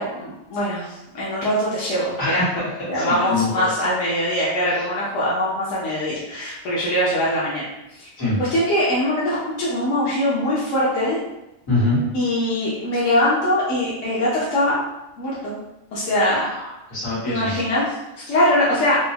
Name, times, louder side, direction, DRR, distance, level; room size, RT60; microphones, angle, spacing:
voice 1, 0.0-2.5 2.9-7.6 7.9-8.1 8.5-11.2 12.1-14.8 15.2-15.5 15.9-16.4 17.3-19.0, left 1 dB, 70° left, -7 dB, 1.1 m, -22 dB
voice 2, 2.2-2.7 2.9-3.7 8.2-8.4 11.7-12.0 16.5-17.5, left 2 dB, 85° left, -9 dB, 2.0 m, -24 dB
4.5 x 2.0 x 2.8 m, 0.94 s
omnidirectional pair, 1.4 m